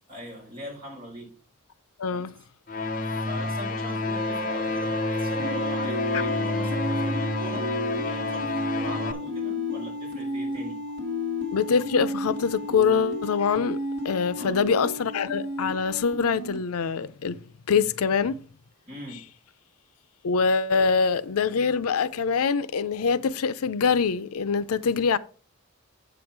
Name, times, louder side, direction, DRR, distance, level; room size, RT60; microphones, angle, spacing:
voice 1, 0.1-1.3 2.1-2.2 3.1-7.7 8.0-10.8 14.4-14.6 18.9-19.2, equal, 25° right, 5.8 m, -41 dB
voice 2, 2.0-2.3 11.5-13.8 14.0-17.4 17.7-18.4 20.2-25.2, left 5 dB, 85° left, 0.5 m, -24 dB
sound 1, 2.7-9.1, left 3 dB, 35° left, 0.6 m, -29 dB
Wind instrument woodwind instrument, 4.1-8.4, right 6 dB, 5° left, 1.0 m, -37 dB
sound 2, 5.4-16.6, left 1 dB, 55° right, 2.0 m, -32 dB
7.8 x 7.0 x 4.6 m
head